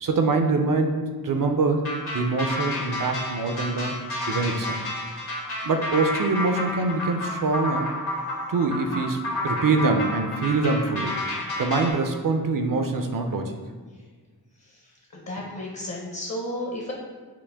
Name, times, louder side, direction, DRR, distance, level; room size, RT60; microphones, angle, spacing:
voice 1, 0.0-1.8 2.1-4.0 4.3-4.8 5.6-7.9 8.5-11.2 11.6-13.6, right 3 dB, 55° right, 5 dB, 0.5 m, -24 dB
sound 1, 1.8-11.9, left 1 dB, 75° left, 1.3 m, -30 dB
voice 2, 15.1-16.9, left 1 dB, 45° left, -3 dB, 0.7 m, -32 dB
5.9 x 2.1 x 3.4 m, 1.5 s
wide cardioid pair, 75°, 39 cm